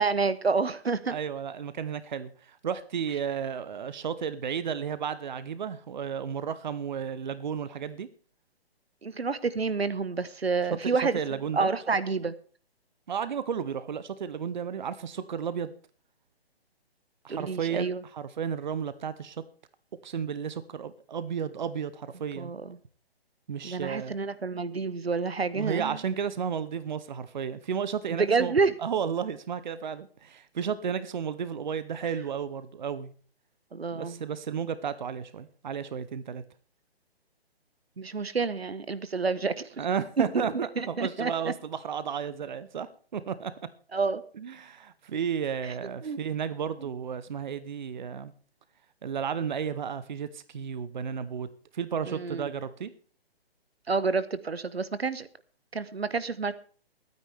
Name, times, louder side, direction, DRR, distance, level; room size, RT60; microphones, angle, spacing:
voice 1, 0.0-1.2 9.0-12.3 17.3-18.0 22.4-22.8 23.6-26.0 28.1-28.7 33.7-34.2 38.0-39.8 40.2-41.3 43.9-44.2 45.6-45.7 46.0-46.2 52.1-52.5 53.9-55.3 55.7-56.5, right 4 dB, 75° right, 15 dB, 1.0 m, -29 dB
voice 2, 1.1-8.1 10.8-11.7 13.1-15.7 17.2-19.4 20.0-22.5 23.5-24.1 25.5-33.1 33.9-36.4 39.8-42.9 43.1-43.5 44.4-48.3 49.0-51.5 51.7-52.9, right 7 dB, 50° right, 15 dB, 0.9 m, -33 dB
22.5 x 9.5 x 3.4 m, 0.43 s
figure-of-eight pair, 135°, 31 cm